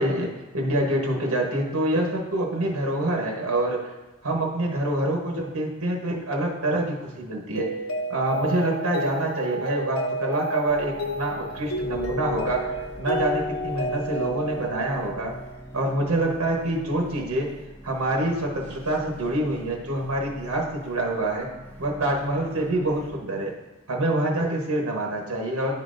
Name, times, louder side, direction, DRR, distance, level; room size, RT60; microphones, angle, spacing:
voice 1, 0.0-3.9 4.2-7.7 8.1-15.3 15.7-17.5 17.8-21.5 21.8-23.5 23.9-25.8, right 1 dB, 85° right, 0 dB, 1.0 m, -26 dB
Mallet percussion, 7.5-15.7, equal, 85° left, 0.8 m, -31 dB
sound 1, 10.7-23.1, equal, 10° left, 0.9 m, -44 dB
10.5 x 3.8 x 2.5 m, 1.2 s
head